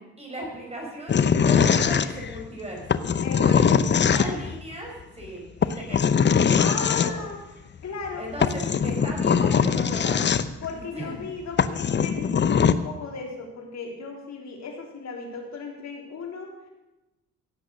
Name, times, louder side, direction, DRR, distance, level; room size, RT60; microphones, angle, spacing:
voice 1, 0.0-3.0 3.3-7.2 8.2-10.3 10.7-11.2, right 1 dB, 20° right, -2 dB, 5.1 m, -37 dB
sound 1, 1.1-2.4 2.9-4.6 5.6-7.1 8.1-8.2 8.4-10.7 11.2-11.3 11.6-12.7, left 7 dB, 35° left, 0.7 m, -21 dB
voice 2, 3.2-4.4 6.5-7.4 7.8-8.3 10.6-16.5, left 4 dB, 65° left, 1 dB, 3.9 m, -36 dB
17.0 x 8.2 x 6.6 m, 1.0 s
cardioid pair, 90°, 30 cm